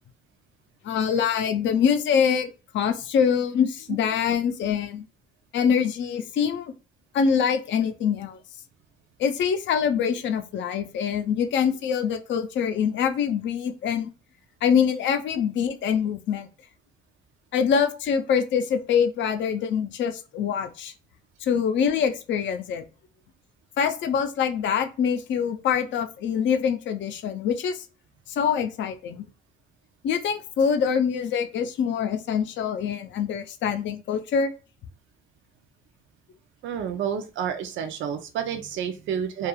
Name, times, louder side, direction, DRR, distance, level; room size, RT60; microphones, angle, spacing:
voice 1, 0.8-2.5 2.7-5.0 5.5-6.7 7.1-8.4 9.2-14.1 14.6-16.5 17.5-20.9 21.4-22.8 23.8-27.8 28.3-29.3 30.0-34.5, left 7 dB, 70° left, 8 dB, 0.5 m, -24 dB
voice 2, 36.6-39.5, right 8 dB, 70° right, 6 dB, 0.4 m, -29 dB
2.3 x 2.3 x 2.9 m, 0.33 s
cardioid pair, 90°, 20 cm